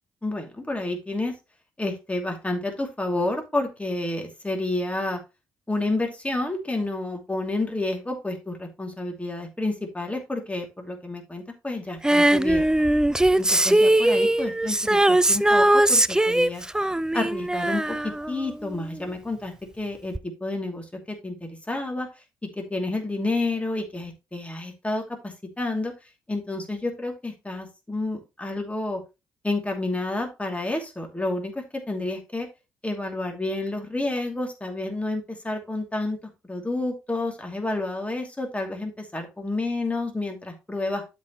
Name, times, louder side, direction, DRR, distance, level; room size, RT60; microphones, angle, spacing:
voice 1, 0.2-1.3 1.8-5.2 5.7-12.7 13.4-16.6 17.1-20.1 20.4-22.1 22.6-25.9 26.3-29.0 29.4-32.5 32.8-36.2 36.4-41.1, left 2 dB, 15° left, 2 dB, 2.7 m, -30 dB
Female singing, 12.0-19.0 20.1-20.2, right 1 dB, 5° right, 0.4 m, -20 dB
12.5 x 4.7 x 3.1 m, 0.26 s
hypercardioid pair, 45°, 10 cm